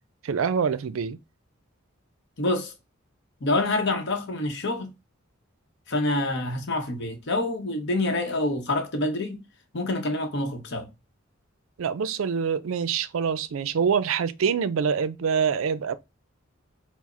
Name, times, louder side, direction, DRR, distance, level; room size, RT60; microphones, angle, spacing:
voice 1, 0.2-1.2 11.8-15.9, right 6 dB, 80° right, 0.4 m, -25 dB
voice 2, 2.4-2.7 3.4-4.9 5.9-9.4 9.7-10.9, left 2 dB, 60° left, 0.8 m, -27 dB
4.7 x 2.0 x 4.2 m
head